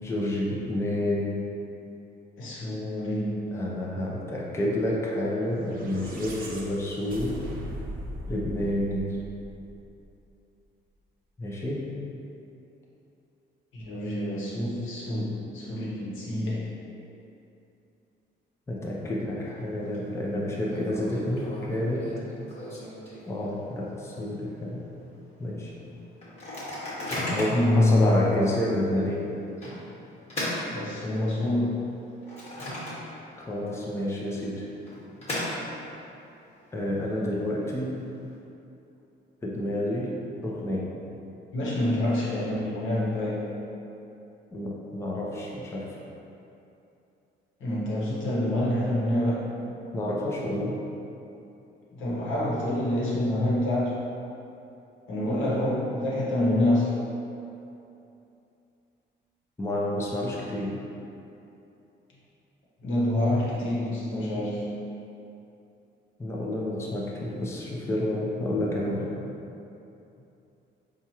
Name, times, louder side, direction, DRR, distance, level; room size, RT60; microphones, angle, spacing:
voice 1, 0.0-1.4 3.5-7.4 8.3-9.2 11.4-11.8 18.7-22.1 23.3-24.8 25.4-25.7 27.3-29.3 33.5-34.7 36.7-38.0 39.4-40.1 40.4-40.9 44.5-46.0 49.9-50.8 59.6-60.7 66.2-69.1, left 1 dB, 15° left, -4 dB, 0.5 m, -29 dB
voice 2, 2.4-3.4 13.7-16.6 27.5-28.4 30.7-31.8 41.5-43.5 47.6-49.5 51.9-53.9 55.1-56.9 62.8-64.7, left 1 dB, 80° left, -7 dB, 1.0 m, -26 dB
sound 1, 5.5-10.0, equal, 45° right, 0.6 m, -39 dB
Microwave oven, 19.4-20.0 20.2-20.3 20.7-23.8 24.2-24.3 24.5-24.9 25.4-25.5 26.2-27.7 28.3-28.5 29.6-31.4 31.9-33.4 33.7-33.8 34.6-36.0, left 1 dB, 35° left, 1.3 m, -36 dB
4.3 x 2.4 x 2.9 m, 2.8 s
cardioid pair, 90°, 20 cm